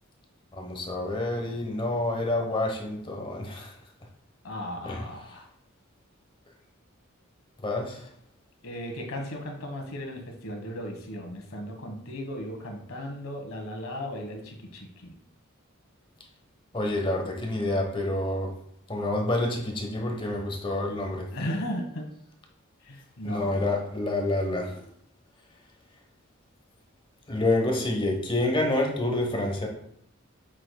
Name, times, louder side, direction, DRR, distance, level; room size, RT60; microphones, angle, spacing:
voice 1, 0.5-3.8 4.8-5.1 7.6-8.1 16.7-18.5 18.9-21.3 23.2-24.8 27.3-29.7, left 2 dB, 25° left, 2 dB, 1.1 m, -28 dB
voice 2, 4.4-5.5 8.6-15.1 21.3-22.1 22.8-23.7, equal, 75° left, 2 dB, 1.5 m, -36 dB
7.7 x 6.0 x 2.3 m, 0.72 s
head